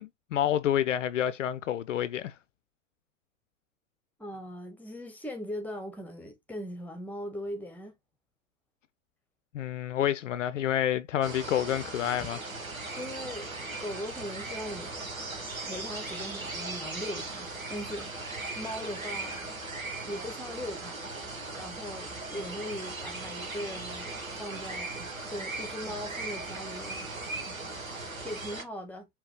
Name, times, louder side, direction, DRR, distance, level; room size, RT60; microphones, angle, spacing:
voice 1, 0.0-2.3 9.5-12.4, left 10 dB, 65° left, 0.5 m, -28 dB
voice 2, 4.2-7.9 12.2-12.3 12.9-13.5 13.8-15.2 15.6-18.2 18.6-19.5 20.0-21.0 21.5-27.1 28.2-29.1, equal, 5° left, 1.2 m, -39 dB
sound 1, 11.2-28.6, right 3 dB, 80° right, 1.3 m, -38 dB
4.7 x 3.2 x 3.2 m
figure-of-eight pair, 95°, 41 cm